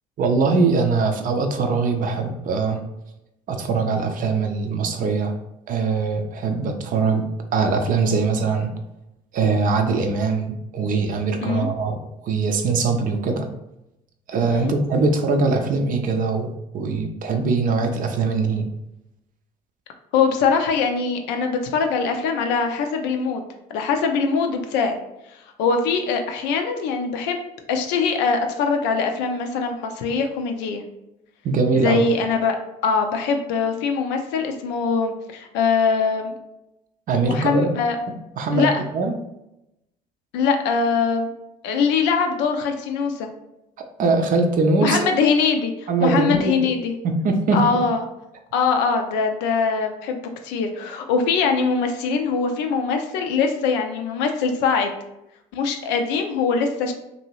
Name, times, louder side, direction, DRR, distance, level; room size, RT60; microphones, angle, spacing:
voice 1, 0.2-2.8 3.5-5.3 5.7-7.2 7.5-8.7 9.3-13.5 14.3-16.5 16.7-18.6 31.4-32.0 37.1-37.7 38.4-38.7 38.9-39.1 44.0-45.1 45.9-46.7 47.0-47.9, right 4 dB, 45° right, 5 dB, 0.5 m, -22 dB
voice 2, 20.1-23.4 23.7-25.0 25.6-27.4 27.7-30.8 31.7-32.6 32.8-36.3 37.2-38.0 38.5-38.7 40.3-41.3 41.6-43.3 44.8-46.9 47.5-48.0 48.5-54.9 55.5-56.9, left 5 dB, 65° left, 5 dB, 0.5 m, -22 dB
2.7 x 2.6 x 2.9 m, 0.88 s
hypercardioid pair, 55°, 19 cm